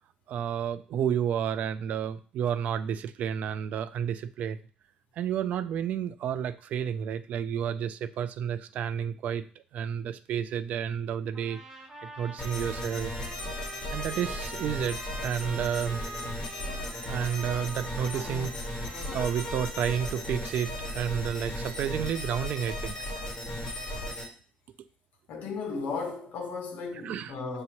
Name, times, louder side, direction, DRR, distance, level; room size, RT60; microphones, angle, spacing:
voice 1, 0.3-4.6 5.2-9.4 9.7-11.6 12.0-13.1 13.9-16.0 17.1-18.8 19.1-23.0 27.0-27.3, right 8 dB, 55° right, 0.3 m, -31 dB
sound 1, 11.3-19.7, right 1 dB, 20° right, 0.7 m, -44 dB
sound 2, 12.4-24.2, left 1 dB, 25° left, 1.4 m, -36 dB
voice 2, 25.3-27.6, left 4 dB, 65° left, 1.0 m, -35 dB
6.5 x 2.8 x 2.9 m
cardioid pair, 165°, 3 cm